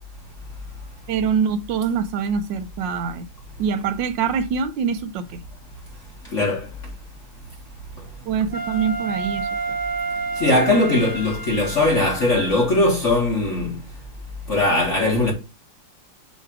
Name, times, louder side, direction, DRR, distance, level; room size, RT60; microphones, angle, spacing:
voice 1, 1.1-3.3 3.6-5.4 8.3-9.8, right 6 dB, 75° right, 1.2 m, -24 dB
voice 2, 6.3-6.6 10.4-13.8 14.5-15.3, left 2 dB, 40° left, 1.8 m, -19 dB
Wind instrument woodwind instrument, 8.5-12.8, right 3 dB, 15° right, 1.0 m, -30 dB
7.1 x 3.4 x 4.5 m
omnidirectional pair, 2.3 m